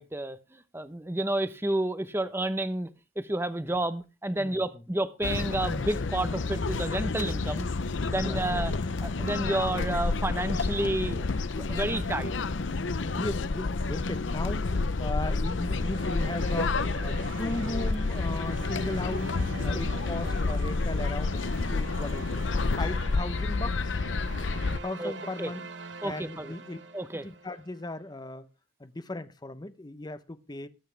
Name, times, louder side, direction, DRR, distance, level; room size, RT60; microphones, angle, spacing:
voice 1, 0.0-2.9 3.2-7.7 8.1-11.3 11.5-12.3 25.0-25.1 25.4-25.5 26.0-26.5 26.9-27.2, right 1 dB, 15° right, 0.8 m, -30 dB
voice 2, 4.4-4.8 8.2-8.4 12.5-22.4 22.7-24.0 24.8-25.7 26.0-26.8 27.1-28.5 28.8-30.7, left 2 dB, 20° left, 0.8 m, -37 dB
sound 1, 5.2-24.8, left 3 dB, 80° left, 0.7 m, -29 dB
sound 2, 15.4-27.8, right 4 dB, 70° right, 1.0 m, -44 dB
20.5 x 8.2 x 3.4 m
head